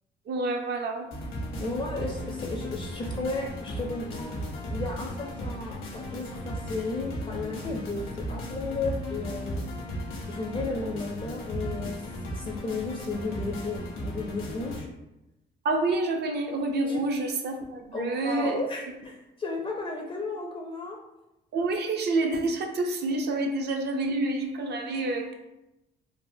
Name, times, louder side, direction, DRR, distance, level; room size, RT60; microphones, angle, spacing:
voice 1, 0.3-1.1 15.6-18.6 21.5-25.3, right 2 dB, 55° right, 4 dB, 0.5 m, -28 dB
sound 1, 1.1-14.8, equal, 80° left, 0.9 m, -36 dB
voice 2, 1.6-4.3 4.7-9.6 10.3-12.0 12.3-14.9 16.9-17.0 17.9-21.0, left 3 dB, 25° left, 1 dB, 0.4 m, -34 dB
3.3 x 2.1 x 2.6 m, 0.94 s
cardioid pair, 90°, 20 cm